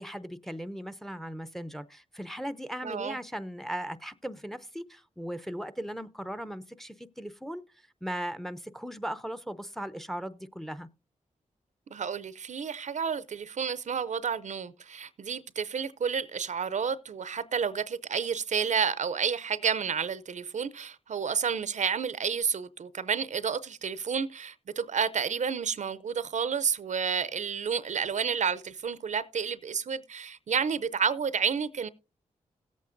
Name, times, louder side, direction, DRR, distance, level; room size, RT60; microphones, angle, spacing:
voice 1, 0.0-7.6 8.0-10.9, equal, ahead, 0.6 m, -38 dB
voice 2, 2.8-3.2 11.9-31.9, right 6 dB, 60° right, 0.5 m, -30 dB
17.0 x 8.3 x 2.5 m
cardioid pair, 55°, 14 cm